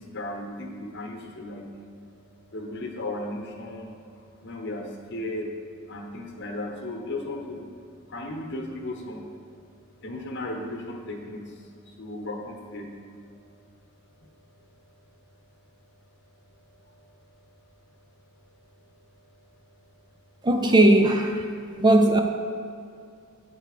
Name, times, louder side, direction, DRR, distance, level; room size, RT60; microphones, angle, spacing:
voice 1, 0.0-1.7 2.5-4.0 4.4-5.5 5.9-7.7 8.1-9.3 10.0-12.9 14.2-14.3 21.6-21.8, left 1 dB, 50° left, 1 dB, 1.1 m, -35 dB
voice 2, 20.4-21.5 21.8-22.2, right 1 dB, 20° right, 5 dB, 0.4 m, -18 dB
8.5 x 4.7 x 6.6 m, 2.4 s
head